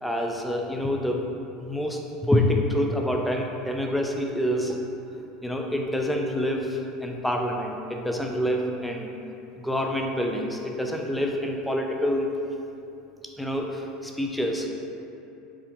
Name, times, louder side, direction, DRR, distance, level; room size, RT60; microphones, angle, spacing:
voice 1, 0.0-1.2 1.6-4.9 5.4-9.1 9.6-12.3 13.4-14.7, left 1 dB, 5° left, 1 dB, 0.4 m, -27 dB
4.2 x 3.7 x 2.8 m, 2.7 s
supercardioid pair, 135°, 0 cm